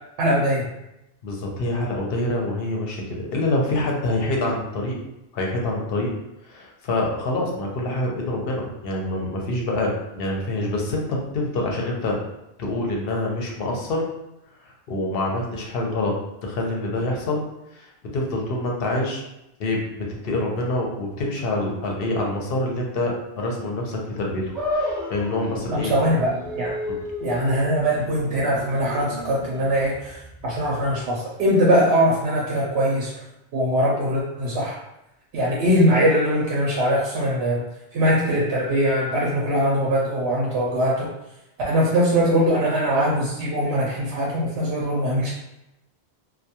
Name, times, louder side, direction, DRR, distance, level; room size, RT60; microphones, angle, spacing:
voice 1, 0.2-0.7 25.7-26.8 27.2-33.2 33.5-34.8 35.3-37.6 37.9-41.1 41.7-45.3, equal, 80° right, -4 dB, 0.8 m, -21 dB
voice 2, 1.2-5.0 5.3-6.1 6.4-12.2 12.6-14.1 14.6-17.4 17.7-19.2 19.6-25.9 26.9-27.0, left 2 dB, 65° left, -1 dB, 0.8 m, -26 dB
sound 1, 24.5-31.0, left 1 dB, ahead, 0.6 m, -33 dB
2.2 x 2.2 x 2.8 m, 0.88 s
omnidirectional pair, 1.1 m